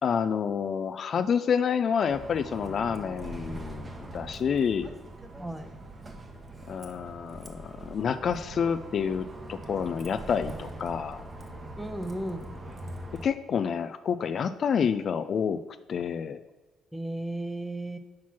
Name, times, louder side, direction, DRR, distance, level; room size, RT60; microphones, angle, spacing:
voice 1, 0.0-4.9 6.7-11.2 13.2-15.6 15.9-16.4, left 7 dB, 55° left, 11 dB, 0.3 m, -28 dB
Bus, 2.1-13.3, right 1 dB, 25° right, 1.0 m, -42 dB
voice 2, 5.4-5.7 11.8-12.5 16.9-18.0, right 1 dB, 5° right, 8 dB, 0.7 m, -34 dB
6.0 x 4.5 x 5.8 m, 1.2 s
cardioid pair, 85°, 0 cm